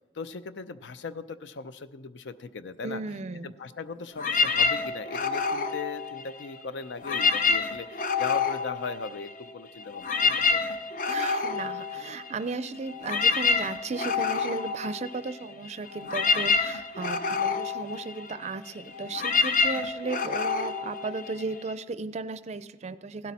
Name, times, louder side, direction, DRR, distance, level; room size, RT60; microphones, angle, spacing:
voice 1, 0.1-3.0 3.4-10.9, left 4 dB, 85° left, 13 dB, 0.6 m, -38 dB
voice 2, 2.8-3.5 11.1-23.3, right 4 dB, 40° right, 13 dB, 0.4 m, -35 dB
sound 1, 4.2-6.6 7.0-9.5 9.8-21.7, left 4 dB, 50° left, 0.7 m, -28 dB
16.0 x 11.5 x 4.2 m, 1.2 s
head